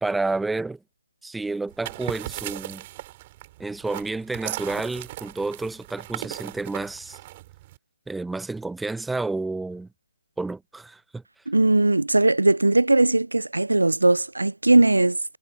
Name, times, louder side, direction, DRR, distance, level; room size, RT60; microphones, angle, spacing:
voice 1, 0.0-0.8 1.2-2.8 3.6-7.2 8.1-9.9 10.4-11.2, right 3 dB, 5° right, 0.7 m, -30 dB
sound 1, 1.7-7.8, right 17 dB, 30° right, 4.5 m, -37 dB
voice 2, 11.5-15.4, right 2 dB, 85° right, 0.3 m, -19 dB
figure-of-eight pair, 145°, 0 cm